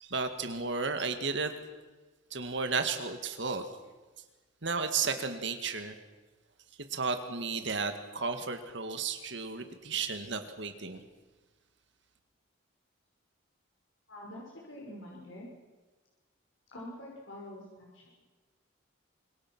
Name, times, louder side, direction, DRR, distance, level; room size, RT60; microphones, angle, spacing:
voice 1, 0.0-1.5 2.3-3.6 4.6-6.0 6.9-11.0, right 4 dB, 60° right, 7 dB, 2.0 m, -33 dB
voice 2, 14.1-15.5 16.7-18.2, left 1 dB, 70° left, -3 dB, 5.7 m, -46 dB
26.0 x 23.5 x 6.2 m, 1.2 s
head